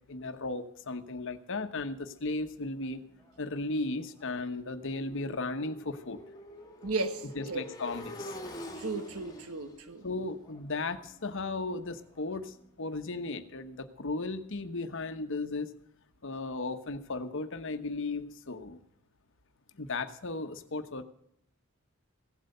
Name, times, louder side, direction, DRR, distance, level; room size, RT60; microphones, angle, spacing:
voice 1, 0.1-3.0 3.4-6.2 7.3-8.3 10.0-15.7 16.2-18.8 19.8-21.0, left 3 dB, 60° left, 1.1 m, -35 dB
Motorcycle, 2.8-12.7, left 1 dB, 20° left, 2.1 m, -47 dB
voice 2, 6.8-7.6 8.8-10.0, right 3 dB, 85° right, 1.2 m, -35 dB
16.0 x 8.2 x 6.7 m
head